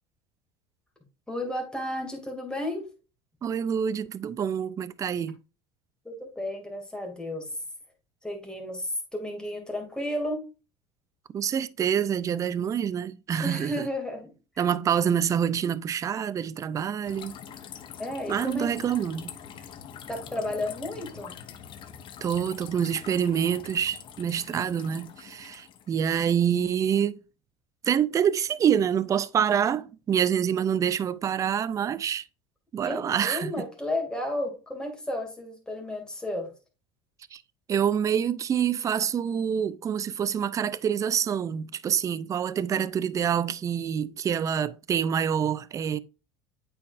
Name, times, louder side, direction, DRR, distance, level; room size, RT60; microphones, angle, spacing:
voice 1, 1.3-2.9 6.0-7.5 8.2-10.5 13.4-14.8 18.0-18.7 20.1-21.3 32.8-36.5, left 1 dB, 5° left, 2.5 m, -33 dB
voice 2, 3.4-5.4 11.3-13.9 14.6-17.4 18.3-19.4 22.2-27.2 27.8-32.2 32.7-33.6 37.3-37.4 37.7-46.0, right 8 dB, 30° right, 0.4 m, -26 dB
sound 1, 17.0-26.0, left 8 dB, 45° left, 0.9 m, -44 dB
8.4 x 4.7 x 2.5 m
supercardioid pair, 110°, 12 cm